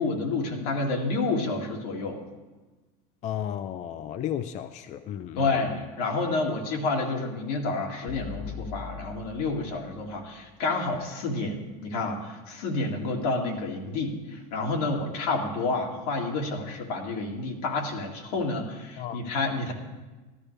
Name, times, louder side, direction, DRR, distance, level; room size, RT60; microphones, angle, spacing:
voice 1, 0.0-2.2 5.4-19.7, left 3 dB, 85° left, 0 dB, 2.2 m, -29 dB
voice 2, 3.2-5.8 19.0-19.2, left 10 dB, 40° left, 10 dB, 0.4 m, -34 dB
sound 1, 8.1-10.3, left 8 dB, 25° left, 0.8 m, -41 dB
13.5 x 12.5 x 3.3 m, 1.2 s
supercardioid pair, 125°, 19 cm